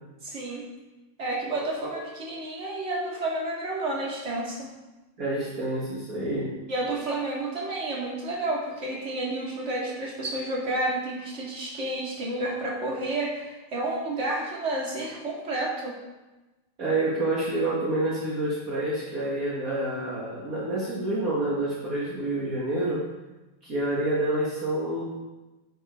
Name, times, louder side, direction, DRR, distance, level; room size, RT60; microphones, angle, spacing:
voice 1, 0.2-0.6 1.2-4.7 6.7-16.0, right 2 dB, 30° right, -3 dB, 1.4 m, -30 dB
voice 2, 5.2-6.5 16.8-23.1 23.6-25.0, right 2 dB, 50° right, -6 dB, 1.0 m, -28 dB
9.8 x 8.2 x 4.5 m, 1.1 s
omnidirectional pair, 4.5 m